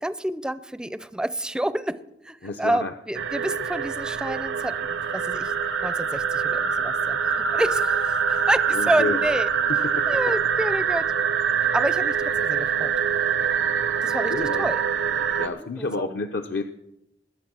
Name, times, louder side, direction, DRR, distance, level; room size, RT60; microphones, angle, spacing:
voice 1, 0.0-5.5 5.8-8.0 8.3-9.5 10.1-11.1 11.7-12.9 14.0-14.8 15.4-16.2, right 1 dB, 5° right, 15 dB, 0.4 m, -29 dB
voice 2, 2.4-2.9 8.7-9.2 10.0-10.1 14.3-14.7 15.2-16.6, left 3 dB, 60° left, 6 dB, 0.6 m, -29 dB
sound 1, 3.1-15.5, right 7 dB, 80° right, 0.7 m, -24 dB
20.5 x 7.1 x 6.1 m, 0.87 s
head